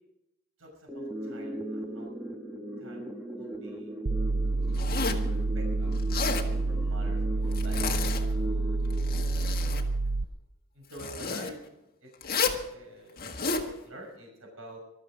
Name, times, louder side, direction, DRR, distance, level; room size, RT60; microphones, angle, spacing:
voice 1, 0.6-2.1 2.8-3.1 3.4-3.9 5.3-8.7 10.7-11.6 12.0-12.1 12.7-13.3 13.6-14.8, right 1 dB, 70° right, 0 dB, 6.2 m, -48 dB
sound 1, 0.9-9.9, right 1 dB, 10° right, 1.7 m, -38 dB
sound 2, 4.1-10.2, right 3 dB, 45° right, 0.7 m, -28 dB
Zipper (clothing), 4.7-5.3 6.0-6.5 7.5-8.2 8.8-9.9 10.9-11.5 12.2-12.6 13.2-13.7, left 5 dB, 45° left, 1.7 m, -31 dB
20.0 x 13.5 x 5.1 m, 0.88 s
head